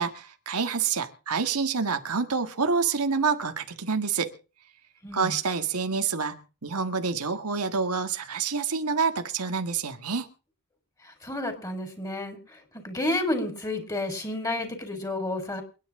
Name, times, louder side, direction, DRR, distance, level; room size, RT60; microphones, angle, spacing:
voice 1, 0.0-4.3 5.1-10.3, right 5 dB, 85° right, 1.7 m, -27 dB
voice 2, 5.0-5.3 11.0-15.6, left 1 dB, 15° left, 4.5 m, -31 dB
28.5 x 10.0 x 3.8 m
head